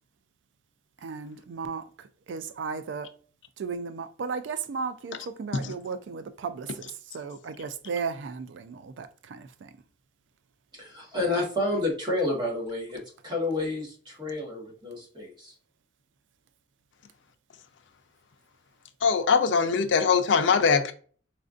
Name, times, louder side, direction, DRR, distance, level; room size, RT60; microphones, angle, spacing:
voice 1, 1.0-3.1 3.6-9.7, right 5 dB, 80° right, 0.4 m, -35 dB
voice 2, 10.8-15.5, left 2 dB, 25° right, 1.3 m, -30 dB
voice 3, 19.0-20.9, left 5 dB, 80° left, 0.5 m, -22 dB
4.2 x 2.5 x 2.4 m
head